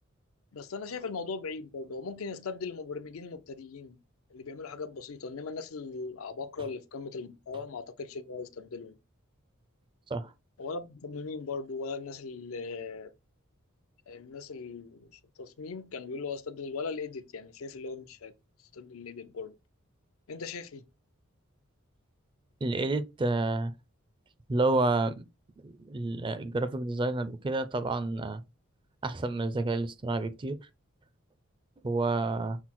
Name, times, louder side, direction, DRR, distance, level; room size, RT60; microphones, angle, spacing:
voice 1, 0.5-4.0 4.3-9.0 10.6-13.1 14.1-18.3 18.7-19.5 20.3-20.8, left 4 dB, 80° left, 0.5 m, -39 dB
voice 2, 22.6-23.7 24.5-25.2 25.6-28.4 29.0-30.6 31.8-32.6, right 2 dB, 25° right, 0.4 m, -29 dB
5.9 x 2.0 x 4.2 m
head